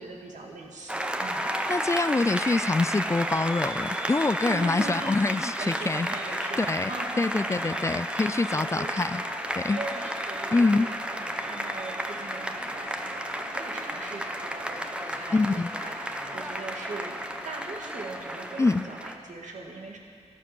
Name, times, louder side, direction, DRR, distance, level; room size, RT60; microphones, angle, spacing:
voice 1, 0.0-1.5 4.4-5.2 5.5-7.9 8.5-8.9 9.7-10.9 11.2-17.2 17.4-20.0, right 3 dB, 85° right, 0 dB, 2.1 m, -40 dB
Applause, 0.9-19.2, right 1 dB, 10° right, 0.9 m, -32 dB
voice 2, 1.7-6.1 6.6-6.9 7.2-9.2 9.6-9.8 10.5-10.9 15.3-15.7 18.6-18.8, left 3 dB, 25° left, 15 dB, 0.3 m, -25 dB
sound 1, 6.2-18.9, left 4 dB, 45° left, 2.3 m, -46 dB
12.0 x 11.5 x 7.7 m, 2.1 s
wide cardioid pair, 75°, 12 cm